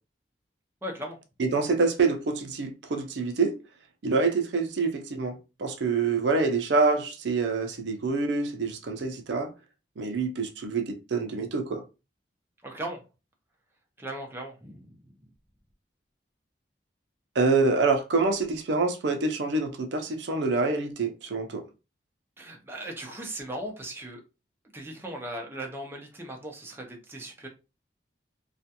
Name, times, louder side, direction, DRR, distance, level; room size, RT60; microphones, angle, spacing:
voice 1, 0.8-1.2 12.6-13.0 14.0-15.1 22.4-24.2 24.7-27.5, right 1 dB, 15° right, 0.5 m, -38 dB
voice 2, 1.4-3.6 4.0-9.5 10.0-11.8 17.4-21.6, right 4 dB, 75° right, 0.5 m, -26 dB
2.4 x 2.2 x 2.7 m
head